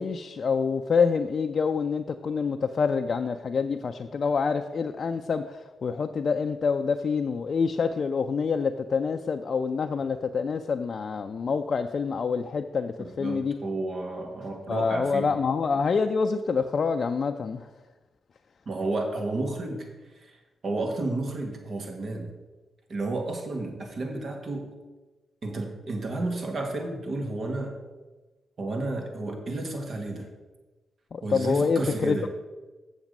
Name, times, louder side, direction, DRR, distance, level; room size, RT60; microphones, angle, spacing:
voice 1, 0.0-13.5 14.7-17.7 31.1-32.3, left 5 dB, 55° left, 5 dB, 0.5 m, -27 dB
voice 2, 13.0-15.4 18.7-19.9 20.2-20.3 20.6-22.3 22.9-24.7 25.4-27.7 28.6-30.3 31.2-32.3, right 2 dB, 55° right, 3 dB, 1.9 m, -31 dB
7.2 x 7.2 x 5.3 m, 1.2 s
supercardioid pair, 45°, 0 cm